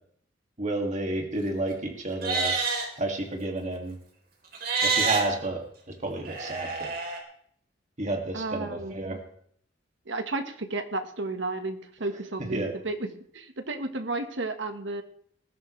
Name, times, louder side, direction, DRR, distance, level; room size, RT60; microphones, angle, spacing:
voice 1, 0.6-2.6 3.0-4.0 4.8-5.6 6.0-6.9 8.0-9.2 12.5-12.7, right 2 dB, 40° right, 2 dB, 2.3 m, -30 dB
Livestock farm animals working animals, 2.1-2.9 4.5-5.2 6.3-7.2, right 4 dB, 55° right, 3.6 m, -27 dB
voice 2, 8.3-9.2 10.1-13.1 13.3-15.0, right 2 dB, 75° right, 7 dB, 1.5 m, -33 dB
20.5 x 15.0 x 3.3 m, 0.63 s
head